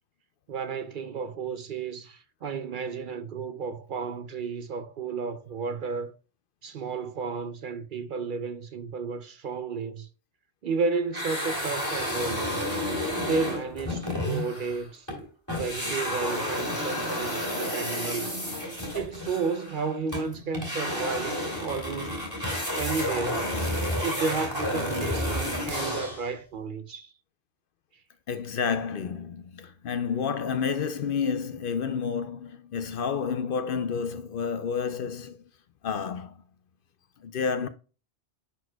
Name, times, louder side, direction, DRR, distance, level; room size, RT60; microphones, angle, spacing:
voice 1, 0.5-6.1 6.6-10.1 10.6-12.6 13.2-15.1 15.6-18.5 18.9-22.2 22.7-23.6 24.0-27.1, right 4 dB, 55° right, 0.7 m, -32 dB
sound 1, 11.1-15.2 15.5-26.3, left 1 dB, 15° left, 2.7 m, -31 dB
voice 2, 28.3-35.5 35.8-36.3 37.2-37.7, left 6 dB, 60° left, 0.7 m, -30 dB
10.5 x 4.6 x 2.2 m
omnidirectional pair, 1.1 m